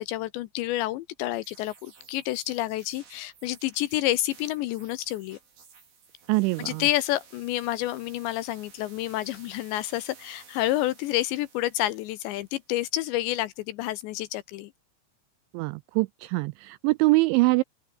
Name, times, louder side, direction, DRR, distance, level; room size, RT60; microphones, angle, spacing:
voice 1, 0.0-5.4 6.6-14.7, left 15 dB, 80° left, 2.8 m, -29 dB
sound 1, 1.4-12.8, right 6 dB, 70° right, 9.7 m, -54 dB
voice 2, 6.3-6.9 15.5-17.6, right 24 dB, 85° right, 2.6 m, -23 dB
open air
omnidirectional pair, 5.8 m